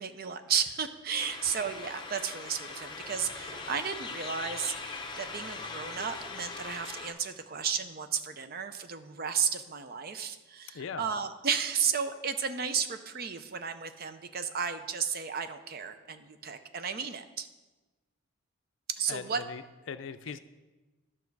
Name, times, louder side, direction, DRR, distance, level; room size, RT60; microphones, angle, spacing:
voice 1, 0.0-17.5 19.0-19.4, right 7 dB, 45° right, 10 dB, 0.5 m, -33 dB
sound 1, 1.2-7.1, left 4 dB, 20° left, 0.7 m, -41 dB
voice 2, 10.7-11.1 19.1-19.6 19.9-20.4, left 6 dB, 60° left, 11 dB, 0.4 m, -39 dB
11.5 x 6.0 x 4.7 m, 1.2 s
head